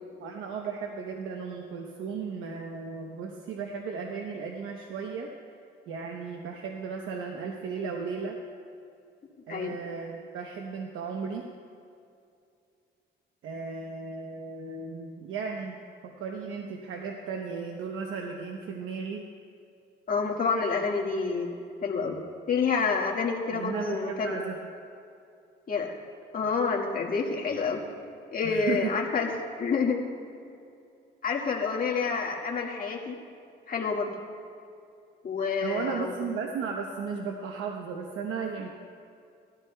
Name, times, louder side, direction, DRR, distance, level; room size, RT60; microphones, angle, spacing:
voice 1, 0.2-5.3 5.9-8.4 9.5-11.5 13.4-15.8 16.0-19.2 23.5-24.6 28.4-28.9 35.6-38.7, right 5 dB, 85° right, 2 dB, 0.9 m, -35 dB
voice 2, 20.1-21.5 21.8-22.2 22.5-24.4 25.7-25.9 26.3-27.8 28.3-29.3 29.6-30.1 31.2-33.2 33.7-34.1 35.2-36.3, left 5 dB, 45° left, -1 dB, 1.8 m, -28 dB
18.5 x 13.0 x 2.3 m, 2.5 s
cardioid pair, 90°, 20 cm